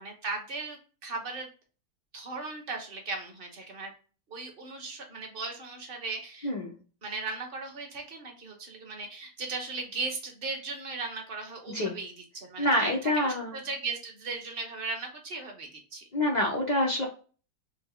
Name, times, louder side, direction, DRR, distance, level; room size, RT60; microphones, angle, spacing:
voice 1, 0.0-1.5 2.1-3.9 4.3-6.5 7.0-12.1 12.4-12.9 13.2-16.0, right 3 dB, 40° right, 2 dB, 0.9 m, -37 dB
voice 2, 6.4-6.8 11.7-12.0 12.6-13.6 16.1-17.1, left 1 dB, 80° left, -2 dB, 0.4 m, -27 dB
4.9 x 2.1 x 3.5 m, 0.37 s
omnidirectional pair, 1.9 m